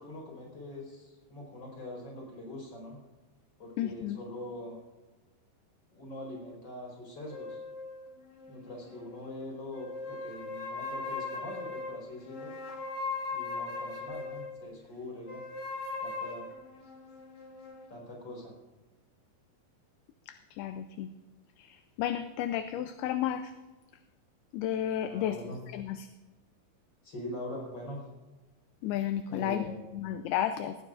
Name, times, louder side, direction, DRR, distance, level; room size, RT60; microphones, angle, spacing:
voice 1, 0.0-3.0 3.6-4.8 5.9-7.6 8.5-12.5 13.3-15.4 16.0-16.5 17.9-18.6 25.0-25.6 27.0-28.0 29.3-29.9, left 1 dB, 30° left, -1 dB, 5.0 m, -43 dB
voice 2, 3.8-4.2 20.3-21.1 21.6-23.5 24.5-26.1 28.8-29.7 29.9-30.8, left 11 dB, 80° left, 9 dB, 2.4 m, -33 dB
sound 1, 7.3-9.3 9.7-14.6 15.3-17.9, left 3 dB, 45° left, 2.2 m, -39 dB
18.0 x 16.5 x 2.5 m, 1.2 s
omnidirectional pair, 4.7 m